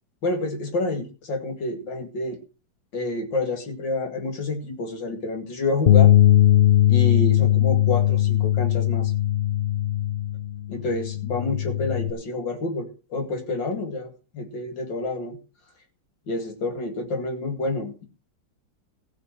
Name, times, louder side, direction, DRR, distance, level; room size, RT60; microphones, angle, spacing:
voice 1, 0.2-2.4 2.9-6.1 6.9-9.1 10.7-15.4 16.3-18.1, left 2 dB, 65° left, 4 dB, 3.0 m, -28 dB
Bass guitar, 5.9-12.1, left 12 dB, 40° left, 0.9 m, -19 dB
15.0 x 5.5 x 7.6 m, 0.34 s
omnidirectional pair, 2.2 m